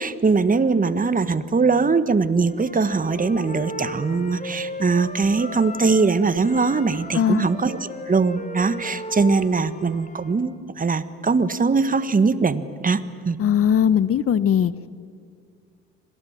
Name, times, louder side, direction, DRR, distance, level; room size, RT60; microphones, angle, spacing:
voice 1, 0.0-13.4, right 4 dB, 25° right, 13 dB, 1.6 m, -21 dB
Wind instrument woodwind instrument, 2.5-6.1 6.4-10.4, equal, 25° left, 4.2 m, -36 dB
voice 2, 7.1-7.5 13.4-14.7, left 9 dB, 45° left, 17 dB, 1.0 m, -19 dB
28.0 x 25.5 x 7.5 m, 2.1 s
hypercardioid pair, 65°, 31 cm